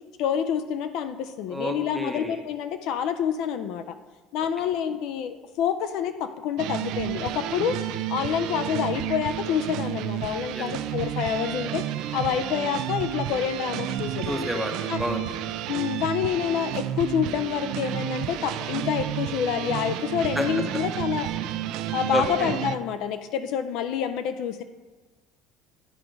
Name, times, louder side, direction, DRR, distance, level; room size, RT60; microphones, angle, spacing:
voice 1, 0.2-4.0 4.3-7.8 8.1-11.8 12.1-14.5 14.9-15.0 15.7-21.3 21.9-24.6, left 8 dB, 55° left, 10 dB, 0.4 m, -27 dB
voice 2, 1.5-2.4 10.5-10.7 14.3-15.4 20.4-20.5 22.1-22.5, equal, ahead, 2 dB, 0.8 m, -29 dB
sound 1, 6.6-22.8, right 12 dB, 55° right, 0.4 m, -31 dB
9.8 x 4.5 x 5.2 m, 1.3 s
cardioid pair, 165°, 0 cm